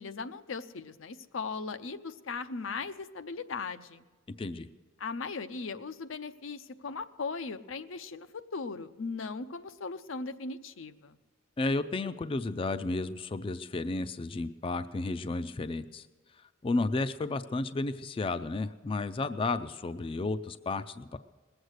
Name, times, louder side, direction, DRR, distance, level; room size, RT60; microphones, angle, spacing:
voice 1, 0.0-4.0 5.0-11.2, left 4 dB, 85° left, 9 dB, 0.6 m, -38 dB
voice 2, 4.3-4.7 11.6-16.1 16.4-21.2, left 3 dB, 25° left, 11 dB, 0.3 m, -32 dB
20.0 x 7.9 x 6.4 m, 1.4 s
head